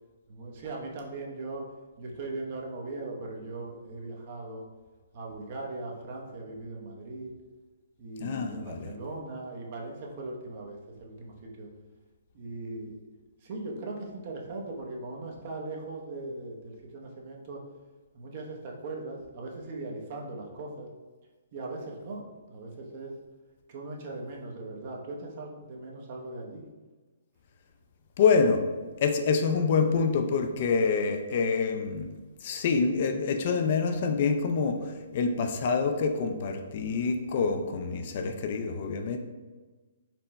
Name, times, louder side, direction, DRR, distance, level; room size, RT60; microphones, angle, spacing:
voice 1, 0.3-1.7 2.0-4.6 5.1-7.3 8.0-11.7 12.3-13.0 13.4-17.6 18.1-20.9 21.5-23.1 23.7-26.6, right 2 dB, 45° right, 0 dB, 0.8 m, -39 dB
voice 2, 8.2-8.9 28.2-28.6 29.0-32.1 32.4-39.2, left 5 dB, 45° left, 5 dB, 0.4 m, -26 dB
4.4 x 2.2 x 4.0 m, 1.3 s
hypercardioid pair, 150°, 0 cm